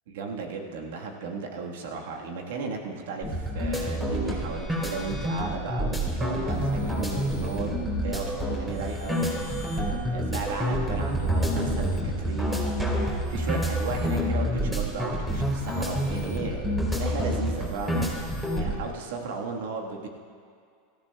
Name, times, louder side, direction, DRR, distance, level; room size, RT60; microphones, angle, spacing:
voice 1, 0.1-9.3 10.1-12.7 13.3-18.1 18.5-20.1, right 4 dB, 75° right, 1 dB, 1.5 m, -35 dB
sound 1, 3.2-18.8, equal, 10° right, 3.5 m, -28 dB
17.5 x 14.5 x 2.3 m, 2.2 s
hypercardioid pair, 105°, 0 cm